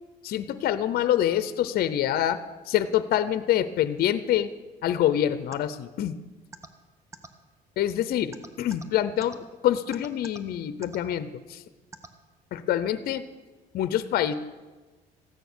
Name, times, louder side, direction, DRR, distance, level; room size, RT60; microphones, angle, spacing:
voice 1, 0.2-2.4 2.7-4.5 4.8-6.2 7.8-11.6 12.5-13.2 13.7-14.3, left 11 dB, 65° left, 13 dB, 0.7 m, -26 dB
sound 1, 5.5-5.6 6.5-6.7 7.1-7.3 8.3-8.8 9.2-9.3 9.9-10.4 10.8-11.0 11.9-12.1, right 3 dB, 15° right, 1.0 m, -42 dB
14.0 x 9.3 x 6.2 m, 1.2 s
cardioid pair, 110°, 17 cm